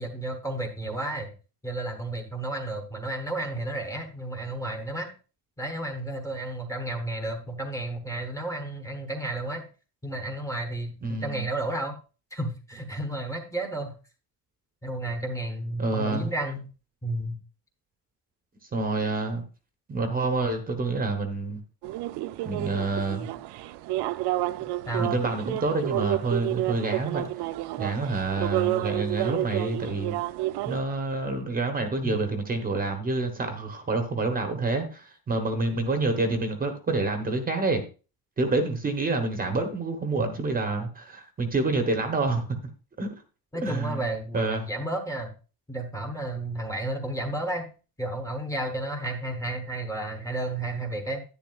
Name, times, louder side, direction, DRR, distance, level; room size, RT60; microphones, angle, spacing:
voice 1, 0.0-1.3 1.6-5.1 5.6-9.6 10.0-11.9 12.3-13.9 14.8-16.7 17.0-17.4 24.9-25.1 32.0-32.2 35.7-35.8 40.2-40.3 43.5-45.3 45.7-47.7 48.0-51.2, right 1 dB, 10° left, 4 dB, 1.1 m, -32 dB
voice 2, 11.0-11.4 15.8-16.3 18.7-19.4 19.9-21.6 22.4-23.3 25.0-27.3 27.8-30.2 30.6-37.8 38.4-42.6 43.0-43.1 43.6-44.0 44.3-44.7, right 3 dB, 20° right, 6 dB, 1.0 m, -28 dB
sound 1, 21.8-30.8, right 15 dB, 80° right, 0.6 m, -30 dB
10.5 x 10.0 x 2.4 m, 0.34 s
cardioid pair, 175°, 39 cm